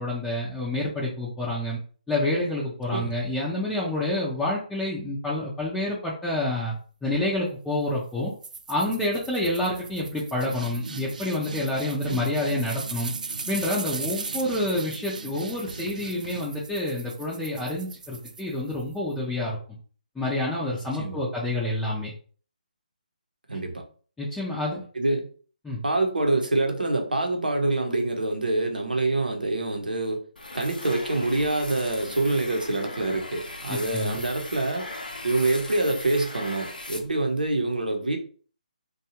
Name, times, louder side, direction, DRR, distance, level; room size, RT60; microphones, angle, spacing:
voice 1, 0.0-1.8 2.1-6.7 7.0-8.3 8.7-13.1 13.5-19.6 20.2-22.1 24.2-24.8 25.6-25.8 33.7-34.2, left 1 dB, 5° left, 0.5 m, -28 dB
sound 1, 8.4-19.0, right 4 dB, 65° right, 0.4 m, -38 dB
voice 2, 23.5-23.8 25.0-25.3 25.8-30.2 30.5-34.9 35.2-38.2, right 2 dB, 85° right, 0.8 m, -26 dB
sound 2, 30.4-37.5, left 2 dB, 85° left, 0.6 m, -38 dB
2.7 x 2.3 x 2.8 m
figure-of-eight pair, 150°, 5 cm